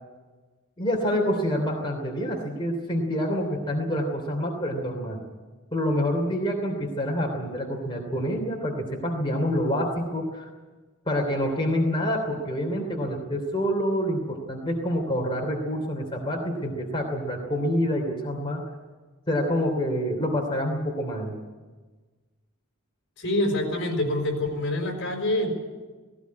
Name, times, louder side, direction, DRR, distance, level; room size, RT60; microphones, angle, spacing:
voice 1, 0.8-5.2 5.7-10.5 11.0-18.6 19.3-21.3, equal, 25° left, 0 dB, 3.1 m, -27 dB
voice 2, 23.2-25.5, left 1 dB, 60° left, 3 dB, 5.3 m, -26 dB
18.0 x 18.0 x 9.6 m, 1.3 s
head